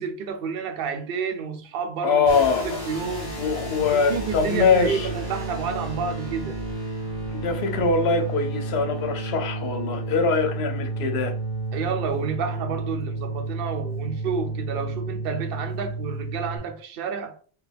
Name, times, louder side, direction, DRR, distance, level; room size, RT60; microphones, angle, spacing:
voice 1, 0.0-2.3 2.6-3.4 3.9-6.6 11.7-17.4, right 6 dB, 65° right, 0.8 m, -30 dB
voice 2, 2.0-2.8 3.3-5.1 7.3-11.3, left 4 dB, 85° left, 0.9 m, -23 dB
sound 1, 2.3-16.6, right 2 dB, 55° left, 1.7 m, -31 dB
4.7 x 2.2 x 3.3 m
omnidirectional pair, 1.0 m